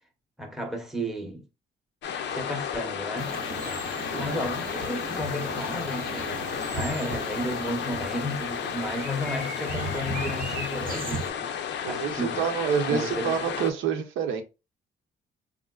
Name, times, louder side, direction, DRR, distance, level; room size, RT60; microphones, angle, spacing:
voice 1, 0.4-1.5 2.3-3.3 4.1-11.5 11.8-12.4 12.9-13.3, equal, ahead, 0.7 m, -33 dB
sound 1, 2.0-13.7, left 8 dB, 65° left, 0.5 m, -33 dB
sound 2, 3.2-11.3, right 3 dB, 45° right, 0.7 m, -37 dB
voice 2, 4.1-4.5 11.8-14.4, right 7 dB, 80° right, 0.7 m, -28 dB
3.5 x 2.5 x 2.3 m
cardioid pair, 90°, 20 cm